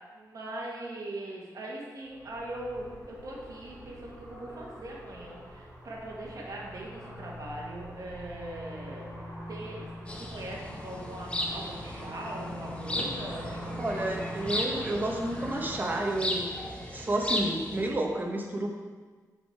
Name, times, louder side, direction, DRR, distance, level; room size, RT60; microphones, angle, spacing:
voice 1, 0.1-14.1, right 1 dB, 60° right, -3 dB, 1.5 m, -41 dB
sound 1, 2.0-15.7, equal, 40° left, 2.3 m, -43 dB
sound 2, 10.1-17.9, left 1 dB, 15° left, 0.9 m, -36 dB
voice 2, 13.8-16.5 16.9-18.7, right 1 dB, 25° right, 0 dB, 1.0 m, -30 dB
6.5 x 6.0 x 4.6 m, 1.4 s
wide cardioid pair, 140°, 7 cm